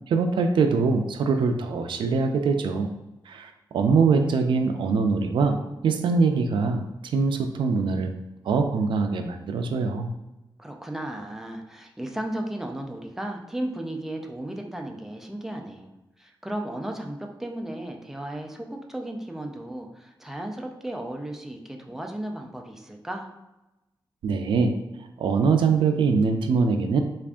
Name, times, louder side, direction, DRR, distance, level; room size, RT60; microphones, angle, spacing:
voice 1, 0.1-2.9 3.3-8.1 8.5-10.1 24.2-24.8 25.2-27.0, right 4 dB, 80° right, 6 dB, 0.3 m, -23 dB
voice 2, 10.6-23.3, right 1 dB, 5° right, 2 dB, 0.4 m, -35 dB
3.4 x 2.4 x 3.5 m, 0.98 s
wide cardioid pair, 170°, 8 cm